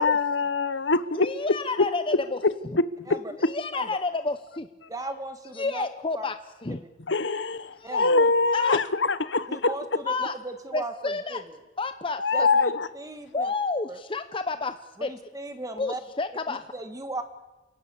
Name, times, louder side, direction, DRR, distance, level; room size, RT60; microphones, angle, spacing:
voice 1, 0.0-1.3 3.1-3.2 7.1-9.7 12.2-12.9, left 4 dB, 75° left, 1.0 m, -23 dB
voice 2, 1.1-2.4 3.4-4.7 5.5-6.4 6.6-6.8 7.7-8.8 10.0-10.4 10.7-11.4 11.8-12.5 13.3-15.1 15.7-16.6, left 3 dB, 30° left, 0.8 m, -30 dB
voice 3, 4.9-5.9 6.1-6.3 7.8-8.1 9.5-11.4 12.3-13.5 13.9-14.0 15.0-16.0 16.5-17.2, right 2 dB, 20° right, 1.8 m, -37 dB
28.5 x 17.5 x 8.4 m
head